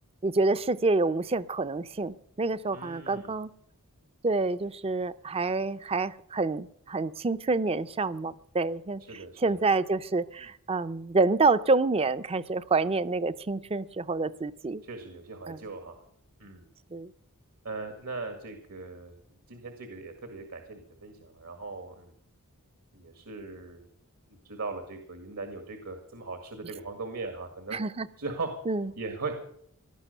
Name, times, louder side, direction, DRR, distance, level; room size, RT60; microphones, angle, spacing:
voice 1, 0.2-3.5 4.2-14.8 15.5-15.6 16.9-17.1 27.7-28.1 28.7-28.9, right 3 dB, 25° right, 14 dB, 0.6 m, -27 dB
voice 2, 2.7-3.3 9.1-9.6 14.8-16.0 16.4-16.7 17.6-19.2 19.5-22.1 22.9-23.9 24.4-27.8 28.2-28.5 29.0-29.3, right 3 dB, 75° right, 6 dB, 2.0 m, -39 dB
18.0 x 12.0 x 6.6 m, 0.67 s
head